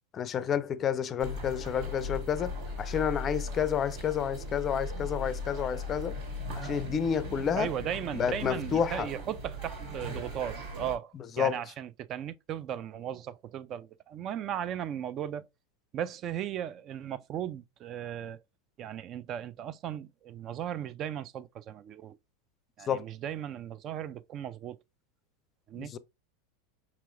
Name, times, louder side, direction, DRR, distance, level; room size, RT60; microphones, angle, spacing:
voice 1, 0.1-2.5 2.8-6.1 6.5-7.7 8.1-9.1 11.4-11.6 22.9-23.1 25.8-26.0, left 8 dB, 35° left, 0.4 m, -30 dB
sound 1, 1.2-11.0, left 1 dB, 70° right, 1.9 m, -38 dB
voice 2, 7.6-15.4 15.9-18.4 18.8-22.2 22.8-24.8 25.7-25.9, right 10 dB, 40° right, 0.3 m, -37 dB
4.8 x 2.9 x 2.5 m
hypercardioid pair, 100°, 0 cm